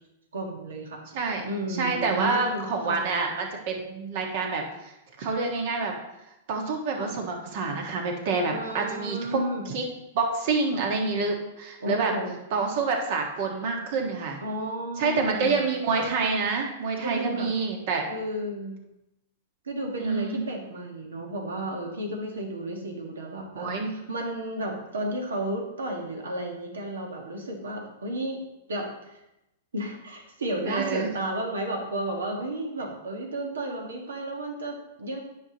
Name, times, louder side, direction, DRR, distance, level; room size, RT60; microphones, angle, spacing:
voice 1, 0.3-1.0 1.4-3.0 7.0-7.1 8.5-9.6 11.8-12.3 14.4-15.6 17.0-17.5 18.1-18.7 19.6-28.4 28.7-29.2 29.7-35.2, right 1 dB, 85° right, 2 dB, 1.6 m, -33 dB
voice 2, 1.1-4.9 5.2-5.9 6.5-9.4 9.6-9.8 10.1-12.1 12.5-14.4 15.0-18.1 20.0-20.4 23.5-23.9 30.6-31.1, right 4 dB, 55° right, 2 dB, 1.5 m, -27 dB
9.8 x 5.8 x 2.9 m, 0.89 s
hypercardioid pair, 115°, 0 cm